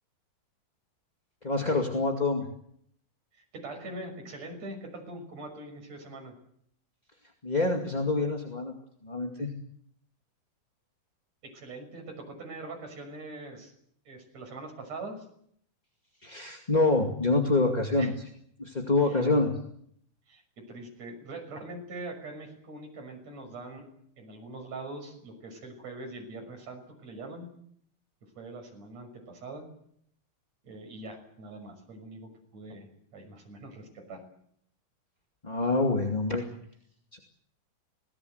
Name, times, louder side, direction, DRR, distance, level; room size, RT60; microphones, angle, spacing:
voice 1, 1.4-2.4 7.4-8.7 9.0-9.5 16.2-18.1 18.6-19.5 35.4-36.4 37.1-37.2, left 2 dB, 15° left, 2 dB, 1.8 m, -26 dB
voice 2, 3.3-6.3 11.4-13.7 14.1-15.3 18.0-18.2 19.1-19.2 20.3-20.4 20.7-23.9 24.2-27.5 28.4-29.7 30.6-34.2, right 2 dB, 50° right, 3 dB, 7.4 m, -42 dB
26.5 x 19.0 x 8.1 m, 0.68 s
omnidirectional pair, 3.9 m